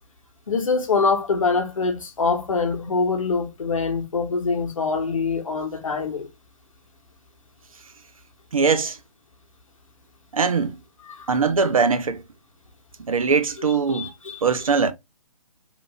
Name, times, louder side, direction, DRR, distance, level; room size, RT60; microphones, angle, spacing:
voice 1, 0.5-6.3 11.1-11.2 13.6-14.4, left 4 dB, 55° left, 0.8 m, -24 dB
voice 2, 8.5-9.0 10.3-10.8 11.3-12.2 13.1-14.1 14.4-14.9, right 5 dB, 60° right, 0.5 m, -21 dB
2.9 x 2.5 x 2.8 m
figure-of-eight pair, 135°, 20 cm